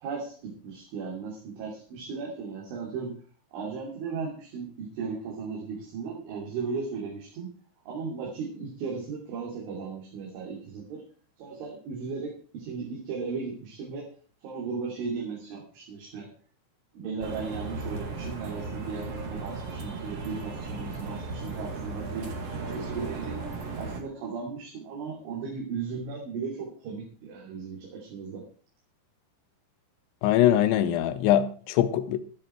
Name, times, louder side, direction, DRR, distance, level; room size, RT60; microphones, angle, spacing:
voice 1, 0.0-3.1 3.5-7.5 7.9-11.0 11.4-14.1 14.4-16.3 17.0-22.3 22.6-23.4 23.8-28.4, right 5 dB, 75° right, 5.4 m, -36 dB
sound 1, 17.2-24.0, right 3 dB, 50° right, 1.9 m, -36 dB
voice 2, 30.2-32.2, left 11 dB, 75° left, 3.0 m, -22 dB
13.0 x 12.0 x 4.5 m
omnidirectional pair, 5.6 m